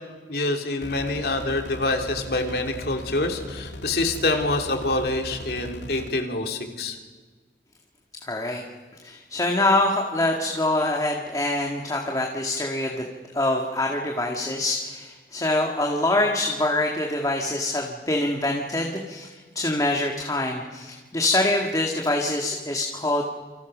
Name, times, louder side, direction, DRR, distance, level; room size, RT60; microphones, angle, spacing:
voice 1, 0.3-7.0, left 2 dB, 60° left, 4 dB, 3.2 m, -26 dB
sound 1, 0.8-6.1, left 1 dB, 90° left, 2.0 m, -39 dB
voice 2, 8.2-8.6 9.0-13.0 13.3-23.2, left 2 dB, 20° left, 1 dB, 2.1 m, -25 dB
28.5 x 27.0 x 6.3 m, 1.5 s
head